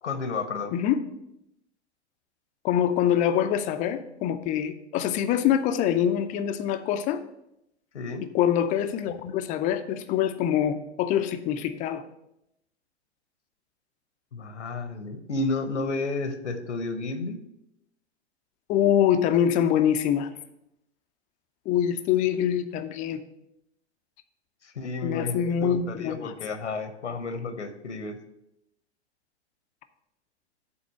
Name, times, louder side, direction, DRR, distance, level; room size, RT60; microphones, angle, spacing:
voice 1, 0.0-0.7 7.9-8.3 14.3-17.4 24.6-28.2, left 3 dB, 80° left, 9 dB, 0.9 m, -32 dB
voice 2, 0.7-1.0 2.6-7.2 8.3-12.0 18.7-20.3 21.7-23.2 25.0-26.3, left 9 dB, 25° left, 10 dB, 0.5 m, -24 dB
7.1 x 4.2 x 6.3 m, 0.83 s
figure-of-eight pair, 105°, 34 cm